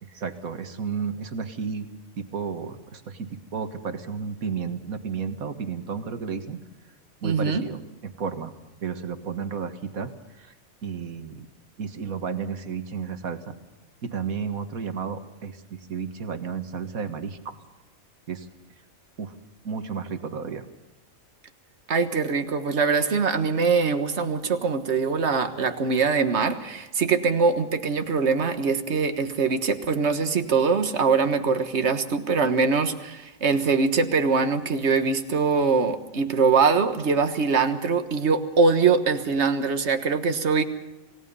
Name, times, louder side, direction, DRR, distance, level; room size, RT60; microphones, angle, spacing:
voice 1, 0.0-1.9 2.2-6.6 7.2-8.5 8.8-10.5 10.8-11.5 11.8-13.6 14.0-17.6 18.3-18.5 19.2-19.3 19.6-20.6, right 6 dB, 90° right, 8 dB, 2.0 m, -32 dB
voice 2, 7.2-7.6 21.9-40.6, right 5 dB, 55° right, 8 dB, 1.7 m, -23 dB
27.0 x 17.5 x 5.5 m, 1.0 s
omnidirectional pair, 1.4 m